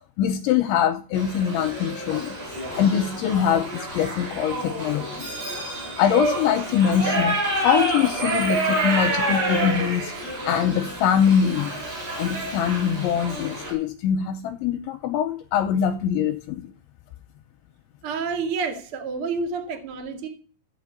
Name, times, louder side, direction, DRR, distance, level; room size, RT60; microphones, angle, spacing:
voice 1, 0.2-2.4 2.7-5.3 5.8-10.1 10.5-11.7 12.2-16.7, left 8 dB, 80° left, 2.8 m, -23 dB
Shout / Livestock farm animals working animals, 1.1-13.7, right 2 dB, 50° right, 9.8 m, -28 dB
voice 2, 18.0-20.3, right 5 dB, 70° right, 1.3 m, -29 dB
14.5 x 6.0 x 8.5 m
omnidirectional pair, 6.0 m